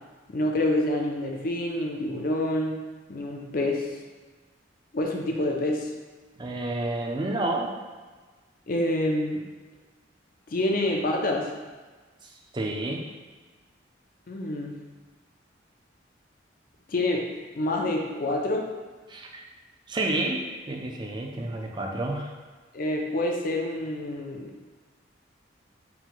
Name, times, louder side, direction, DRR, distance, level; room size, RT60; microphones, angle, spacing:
voice 1, 0.3-2.8 3.1-4.0 4.9-5.9 8.7-9.4 10.5-11.5 14.3-14.8 16.9-17.3 17.5-18.7 22.7-24.5, left 1 dB, 50° left, 1 dB, 0.5 m, -27 dB
voice 2, 6.4-7.7 12.5-13.0 19.1-19.4 19.9-22.3, right 2 dB, 25° right, 1 dB, 0.4 m, -30 dB
4.4 x 2.2 x 3.9 m, 1.4 s
head